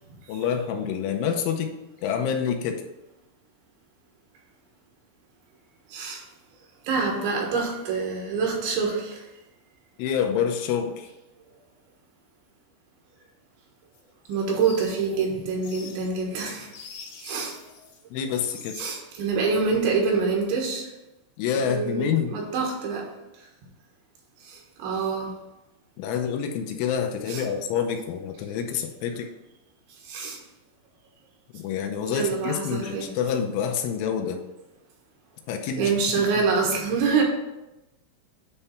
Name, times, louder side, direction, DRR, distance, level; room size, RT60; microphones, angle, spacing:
voice 1, 0.3-1.8 2.0-2.8 10.0-11.1 18.1-18.8 21.4-22.4 26.0-29.3 31.5-34.4 35.5-36.2, left 7 dB, 80° left, 4 dB, 3.2 m, -27 dB
voice 2, 5.9-6.2 6.9-9.3 14.3-16.7 17.2-17.6 18.7-20.9 21.6-23.1 24.4-25.3 27.3-27.4 30.0-30.4 32.1-33.1 35.8-37.2, right 5 dB, 70° right, -1 dB, 3.5 m, -26 dB
sound 1, 13.9-18.0 18.3-19.3, left 5 dB, 65° left, 2.4 m, -46 dB
9.8 x 3.4 x 5.7 m, 0.96 s
omnidirectional pair, 5.7 m